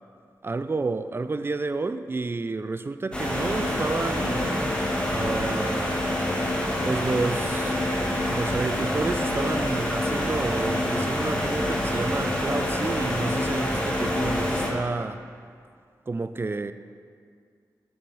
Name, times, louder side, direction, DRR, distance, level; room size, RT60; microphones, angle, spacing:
voice 1, 0.4-4.7 5.1-6.0 6.8-7.8 8.3-15.2 16.1-16.7, right 3 dB, 30° right, 12 dB, 0.3 m, -30 dB
sound 1, 3.1-14.7, left 1 dB, 15° left, 1.4 m, -26 dB
6.6 x 5.6 x 4.0 m, 2.2 s
cardioid pair, 45°, 8 cm